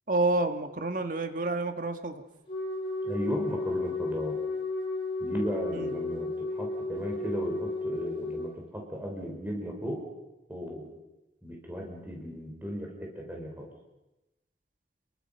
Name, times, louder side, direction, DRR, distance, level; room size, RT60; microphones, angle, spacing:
voice 1, 0.1-2.2 5.7-5.9, right 2 dB, 50° right, 7 dB, 1.6 m, -29 dB
Wind instrument woodwind instrument, 2.5-8.5, left 3 dB, 30° left, 7.5 m, -33 dB
voice 2, 3.0-4.3 5.2-10.0 10.5-10.9 11.4-13.7, equal, 10° right, 0 dB, 5.1 m, -36 dB
27.5 x 23.0 x 5.8 m, 1.0 s
head